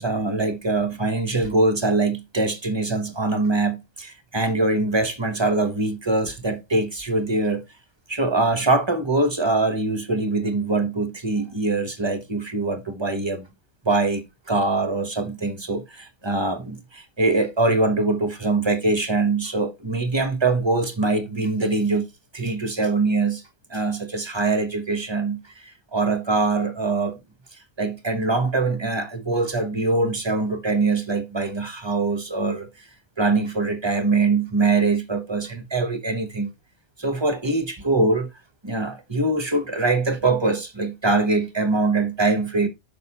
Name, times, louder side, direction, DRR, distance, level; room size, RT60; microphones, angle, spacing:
voice 1, 0.0-7.6 8.1-13.5 13.8-22.1 22.3-23.4 23.7-25.6 25.9-27.2 27.8-32.7 33.2-36.5 37.0-38.3 38.6-42.7, right 3 dB, 25° right, 1.0 m, -23 dB
6.4 x 5.2 x 4.1 m
omnidirectional pair, 1.2 m